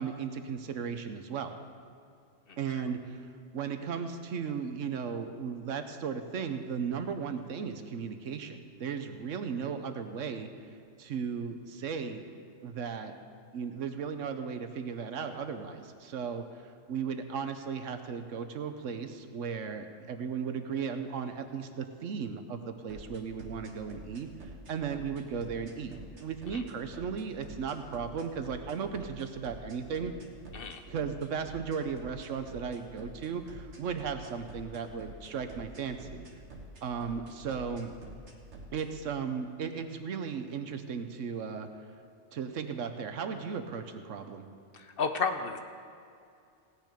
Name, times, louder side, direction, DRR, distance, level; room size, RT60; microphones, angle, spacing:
voice 1, 0.0-1.6 2.6-3.3 3.5-10.5 11.0-12.2 12.6-13.1 13.5-24.3 24.7-30.1 30.9-36.2 36.8-38.0 38.7-41.7 42.3-44.4, right 6 dB, 80° right, 8 dB, 1.2 m, -36 dB
sound 1, 22.9-38.8, right 2 dB, 65° right, 1.7 m, -47 dB
voice 2, 45.0-45.6, left 5 dB, 55° left, 7 dB, 0.8 m, -30 dB
16.5 x 9.4 x 5.1 m, 2.4 s
omnidirectional pair, 1.3 m